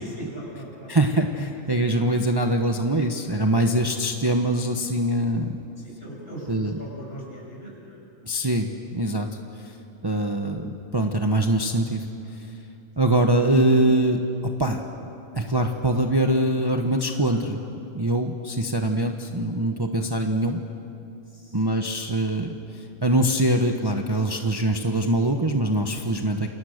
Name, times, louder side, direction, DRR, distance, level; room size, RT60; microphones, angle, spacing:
voice 1, 0.0-1.0 5.8-8.0 17.1-17.4 21.3-21.6 24.4-24.5, right 1 dB, 45° left, -3 dB, 7.6 m, -40 dB
voice 2, 0.9-5.6 6.5-6.7 8.2-9.3 9.6-9.7 10.0-12.1 13.0-15.1 15.3-17.6 17.9-20.6 21.5-26.5, right 1 dB, 20° right, 4 dB, 1.1 m, -23 dB
29.0 x 26.5 x 6.6 m, 2.7 s
omnidirectional pair, 1.4 m